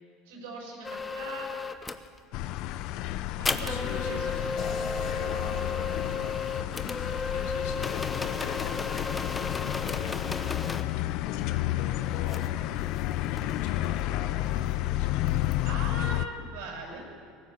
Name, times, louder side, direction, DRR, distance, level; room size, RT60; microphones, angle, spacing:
voice 1, 0.3-1.5 3.4-4.5 15.6-17.0, right 2 dB, 85° right, 1 dB, 7.3 m, -40 dB
sound 1, 0.8-2.1 3.5-10.9 12.3-12.5 12.8-14.0 15.3-15.6, left 4 dB, 15° left, 0.9 m, -34 dB
sound 2, 2.3-16.3, left 15 dB, 60° left, 0.7 m, -31 dB
voice 2, 3.7-4.2 5.0-7.9 8.2-10.5 11.2-13.0 13.3-15.3, left 6 dB, 80° left, 1 dB, 3.7 m, -43 dB
sound 3, 4.6-7.6, left 3 dB, 40° left, 3.4 m, -44 dB
20.0 x 17.5 x 7.6 m, 2.3 s
supercardioid pair, 135°, 0 cm